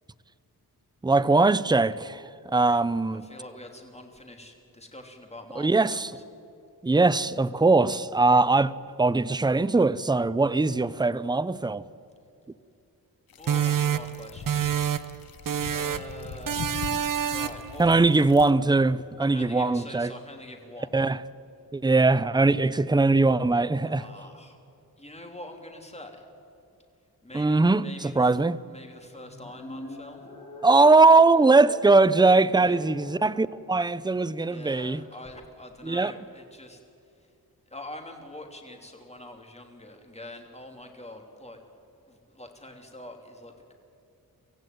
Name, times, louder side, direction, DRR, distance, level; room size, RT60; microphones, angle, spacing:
voice 1, 1.0-3.2 5.6-6.1 6.8-8.7 9.0-11.9 17.8-20.1 20.9-21.2 21.7-24.0 27.3-28.6 30.6-35.0 35.8-36.1, right 3 dB, 10° right, 0.6 m, -21 dB
voice 2, 3.1-6.2 13.4-14.6 15.7-16.6 17.2-17.9 19.2-21.1 23.9-24.6 25.0-26.3 27.2-28.4 28.7-30.2 32.5-32.9 34.1-36.8 37.1-37.3 37.7-41.6 42.1-43.7, left 1 dB, 15° left, 3.2 m, -44 dB
sound 1, 13.3-18.5, left 7 dB, 70° left, 1.0 m, -41 dB
sound 2, 13.5-15.2 15.5-16.1 16.5-17.7, right 9 dB, 60° right, 0.8 m, -27 dB
sound 3, 29.2-33.6, left 1 dB, 55° left, 6.5 m, -43 dB
24.5 x 15.5 x 9.3 m
wide cardioid pair, 90°, 37 cm